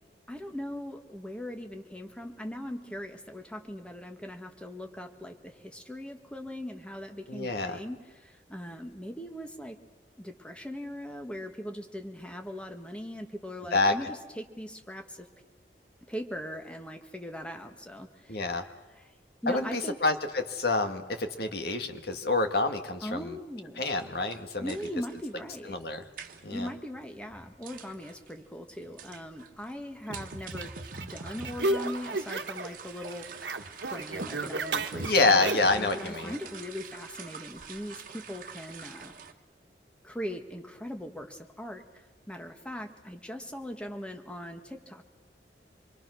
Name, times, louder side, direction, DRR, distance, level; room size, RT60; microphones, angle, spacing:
voice 1, 0.3-9.8 10.2-15.3 16.1-18.4 18.9-19.1 19.4-20.0 23.0-23.8 24.6-25.8 26.5-39.1 40.0-45.0, left 1 dB, 5° left, 5 dB, 1.7 m, -40 dB
voice 2, 7.3-7.8 13.7-14.0 18.3-18.6 19.5-23.4 23.8-24.8 25.7-26.0 26.4-26.7 35.0-36.3, left 3 dB, 60° left, 6 dB, 1.9 m, -27 dB
sound 1, 23.9-39.3, right 6 dB, 50° right, 1.6 m, -47 dB
sound 2, 30.1-32.8 33.0-35.8, right 2 dB, 80° right, 1.3 m, -34 dB
26.5 x 23.0 x 6.4 m, 1.2 s
head